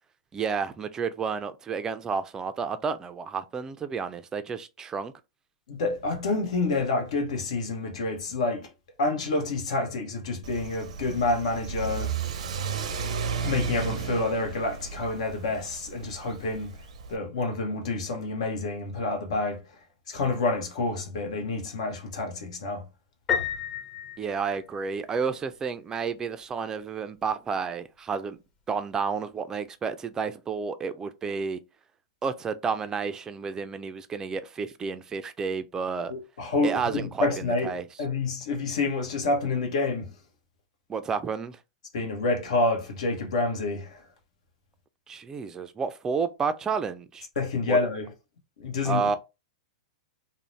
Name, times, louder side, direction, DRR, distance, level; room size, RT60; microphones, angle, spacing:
voice 1, 0.3-5.1 24.2-28.4 28.7-31.6 32.2-36.1 36.6-37.3 37.6-37.8 40.9-41.6 45.1-47.3 47.7-47.8 48.8-49.2, right 5 dB, 15° right, 0.3 m, -31 dB
voice 2, 5.7-8.7 9.0-12.1 13.4-16.8 17.1-19.6 20.1-22.8 36.1-40.2 41.9-44.0 47.4-48.1 48.6-49.2, left 3 dB, 75° left, 0.9 m, -28 dB
Car / Accelerating revving vroom, 10.4-17.2, right 6 dB, 85° right, 0.5 m, -34 dB
Piano, 23.3-25.1, left 8 dB, 30° left, 0.8 m, -31 dB
2.5 x 2.0 x 3.1 m
hypercardioid pair, 130°, 4 cm